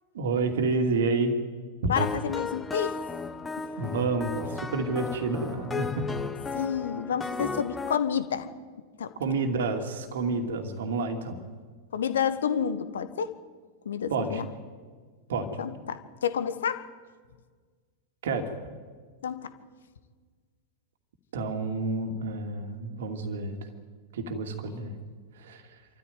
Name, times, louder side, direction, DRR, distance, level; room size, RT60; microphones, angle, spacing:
voice 1, 0.1-1.4 1.8-1.9 3.8-6.1 9.2-11.4 14.1-14.4 15.3-15.6 18.2-18.5 21.3-23.6 24.1-25.0 25.4-25.6, right 3 dB, 60° right, 6 dB, 2.6 m, -29 dB
voice 2, 1.9-2.9 6.5-8.5 9.0-9.1 11.9-13.3 13.8-14.5 15.6-16.9 19.2-19.5, left 8 dB, 65° left, 12 dB, 1.4 m, -29 dB
sound 1, 2.0-8.0, left 4 dB, 15° left, 1.3 m, -35 dB
27.5 x 14.0 x 9.5 m, 1.5 s
figure-of-eight pair, 90°, 0 cm